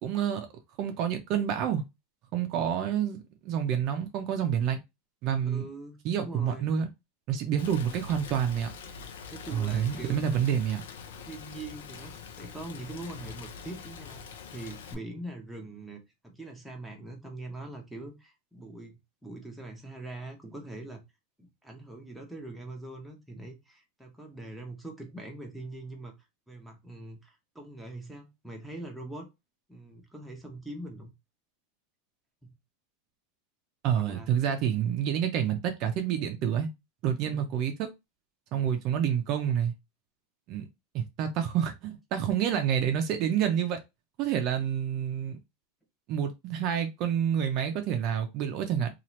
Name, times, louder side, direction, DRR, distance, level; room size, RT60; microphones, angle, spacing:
voice 1, 0.0-0.5 0.8-1.8 2.3-4.8 5.2-5.6 6.0-6.9 7.3-8.7 9.5-10.8 33.8-36.7 37.0-37.9 38.5-39.7 40.5-40.7 40.9-43.8 44.2-45.4 46.1-48.9, right 9 dB, 40° right, 0.5 m, -28 dB
voice 2, 5.4-6.7 9.3-10.2 11.2-21.0 21.4-26.1 26.5-29.3 29.7-31.1 32.4-32.5 34.0-34.3 37.3-37.5, right 2 dB, ahead, 0.7 m, -43 dB
Rain, 7.6-14.9, left 6 dB, 85° left, 0.5 m, -44 dB
2.8 x 2.4 x 3.0 m
supercardioid pair, 150°, 0 cm